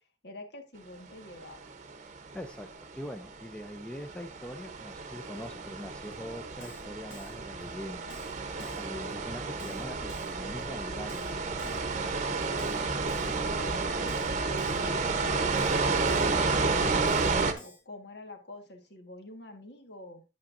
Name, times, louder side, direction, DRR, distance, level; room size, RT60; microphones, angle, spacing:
voice 1, 0.0-1.7 13.0-17.2 17.6-20.2, left 2 dB, 65° left, 5 dB, 1.6 m, -46 dB
sound 1, 1.4-17.5, right 4 dB, 40° right, 0.8 m, -31 dB
voice 2, 2.1-8.1 8.6-12.1, equal, 5° left, 7 dB, 0.6 m, -43 dB
Keyboard (musical), 6.1-6.2 6.6-6.8 7.1-7.3 7.6-7.7 8.1-8.3 8.6-8.8 9.1-9.2 9.6-9.8 10.1-10.3 10.6-10.7 11.1-11.3 11.6-11.8 12.1-12.2 12.6-12.8 13.1-13.3 13.6-13.7 14.1-14.3 14.6-14.8 15.1-15.2 15.6-15.8 16.1-16.3 16.6-16.7 17.1-17.3 17.6-17.8, left 2 dB, 90° left, 2.7 m, -51 dB
8.7 x 8.5 x 2.6 m, 0.29 s
head